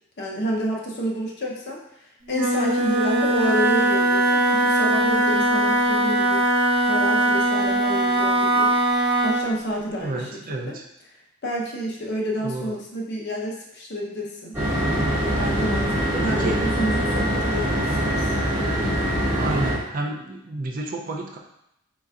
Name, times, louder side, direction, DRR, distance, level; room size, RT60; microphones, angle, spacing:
voice 1, 0.2-6.4 6.9-8.8 9.2-10.8 11.4-14.5 15.4-18.3, equal, 50° left, -2 dB, 0.8 m, -29 dB
Wind instrument woodwind instrument, 2.3-9.5, right 1 dB, 70° right, 1.0 m, -20 dB
voice 2, 10.0-10.8 12.4-12.7 16.1-16.6 19.4-21.4, right 2 dB, 40° right, 1 dB, 0.4 m, -30 dB
sound 1, 14.5-19.8, equal, 10° right, 1.4 m, -23 dB
4.4 x 4.0 x 2.4 m, 0.81 s
head